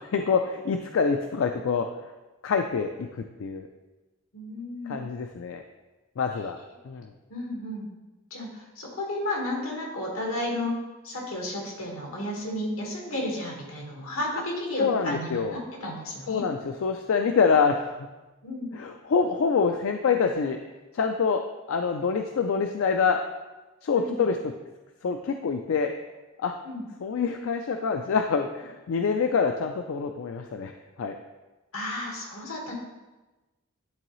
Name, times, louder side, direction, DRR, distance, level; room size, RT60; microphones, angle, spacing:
voice 1, 0.0-1.9 2.4-3.7 4.9-5.6 6.2-6.6 6.8-7.1 14.8-15.6 16.3-17.9 18.7-20.6 20.9-21.4 21.7-23.2 23.8-24.5 25.0-25.9 26.4-26.5 27.0-30.7 31.0-31.2, left 5 dB, 70° left, 5 dB, 0.4 m, -26 dB
voice 2, 4.3-5.0 7.3-7.9 8.3-10.8 11.0-16.5 18.4-18.7 23.9-24.2 26.6-26.8 31.7-32.7, left 1 dB, 90° left, -2 dB, 1.7 m, -33 dB
10.5 x 3.8 x 3.1 m, 1.1 s
head